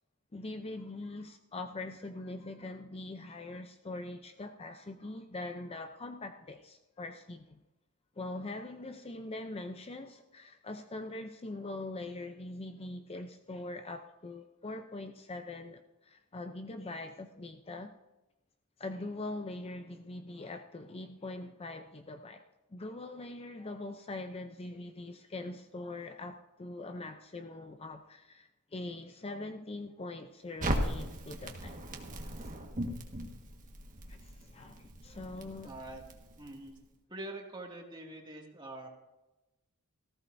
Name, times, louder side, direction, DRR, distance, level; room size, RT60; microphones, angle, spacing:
voice 1, 0.3-7.6 8.2-17.9 18.8-22.4 22.7-31.8 34.1-35.7, left 2 dB, 25° left, 7 dB, 0.5 m, -42 dB
Crackle, 30.6-36.7, right 1 dB, 35° right, 1.6 m, -38 dB
voice 2, 35.6-36.0 36.4-36.8 37.1-38.9, right 2 dB, 20° right, 0 dB, 2.2 m, -44 dB
18.0 x 15.0 x 2.7 m, 1.0 s
head